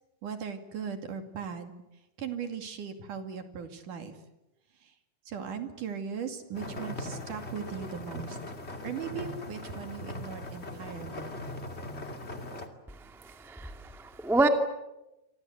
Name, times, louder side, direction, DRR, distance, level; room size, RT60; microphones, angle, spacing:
voice 1, 0.2-1.7 2.2-4.2 4.8-4.9 5.3-8.6 8.8-11.3, right 7 dB, 55° right, 6 dB, 3.7 m, -38 dB
sound 1, 6.5-12.7, left 1 dB, 20° left, 2.0 m, -40 dB
voice 2, 13.2-14.5, right 2 dB, ahead, 5 dB, 1.1 m, -28 dB
28.5 x 25.0 x 8.2 m, 0.96 s
omnidirectional pair, 4.5 m